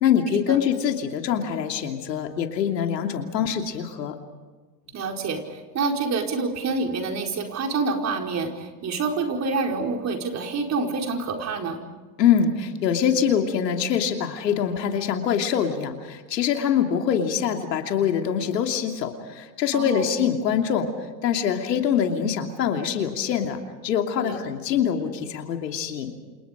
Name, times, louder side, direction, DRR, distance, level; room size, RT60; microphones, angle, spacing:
voice 1, 0.0-4.1 12.2-20.9 21.2-26.1, left 8 dB, 80° left, 4 dB, 3.0 m, -24 dB
voice 2, 4.9-11.8 19.7-20.1 24.2-24.4, right 4 dB, 30° right, 2 dB, 4.7 m, -27 dB
29.0 x 28.0 x 5.2 m, 1.4 s
hypercardioid pair, 95°, 50 cm